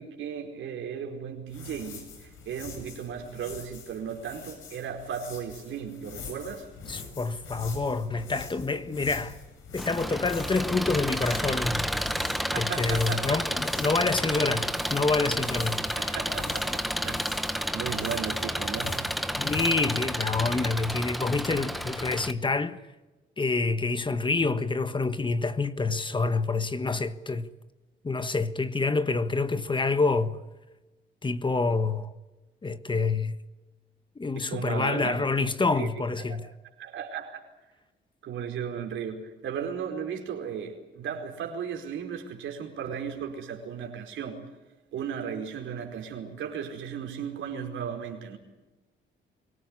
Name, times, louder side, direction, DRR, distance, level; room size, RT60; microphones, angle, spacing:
voice 1, 0.0-6.7 12.5-13.4 16.0-17.2 17.7-19.0 34.3-35.5 35.8-36.4 36.8-37.4 38.2-44.4 44.9-48.4, right 7 dB, 75° right, 4.8 m, -36 dB
sound 1, 1.5-19.9, left 5 dB, 80° left, 7.7 m, -44 dB
voice 2, 6.9-9.4 9.7-11.9 12.6-16.1 19.4-22.8 23.4-27.5 28.0-30.4 31.2-32.1 32.6-33.4 34.2-36.5, left 3 dB, 25° left, 1.4 m, -27 dB
Engine, 9.8-22.3, equal, ahead, 1.2 m, -31 dB
24.5 x 18.0 x 9.8 m
cardioid pair, 90°, 20 cm